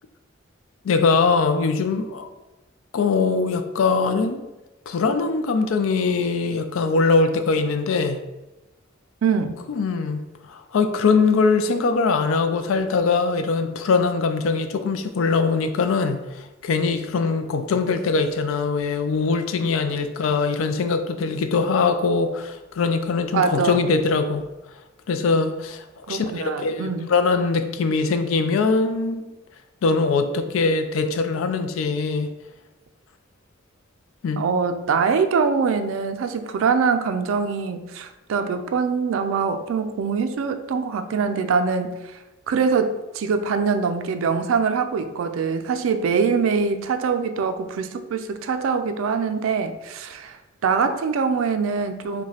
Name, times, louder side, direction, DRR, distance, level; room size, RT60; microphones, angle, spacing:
voice 1, 0.8-2.3 2.9-4.4 4.9-8.2 9.7-10.2 10.5-24.5 25.1-29.2 29.8-32.3 34.2-34.4, left 4 dB, 75° left, 8 dB, 0.4 m, -22 dB
voice 2, 9.2-9.6 23.3-23.8 26.1-27.1 34.4-42.0 42.5-50.4 50.6-52.2, right 5 dB, 70° right, 9 dB, 0.3 m, -23 dB
4.7 x 2.2 x 2.8 m, 1.0 s
head